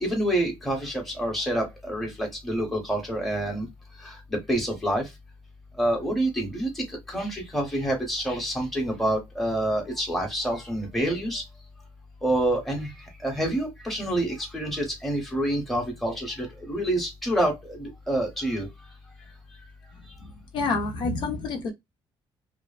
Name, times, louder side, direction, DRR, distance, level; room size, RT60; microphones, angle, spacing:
voice 1, 0.0-3.7 4.0-5.0 5.8-11.4 12.2-12.9 13.2-18.7, right 1 dB, ahead, 0.8 m, -27 dB
voice 2, 20.5-21.7, left 3 dB, 55° left, 0.5 m, -27 dB
2.5 x 2.3 x 2.3 m
cardioid pair, 175°, 9 cm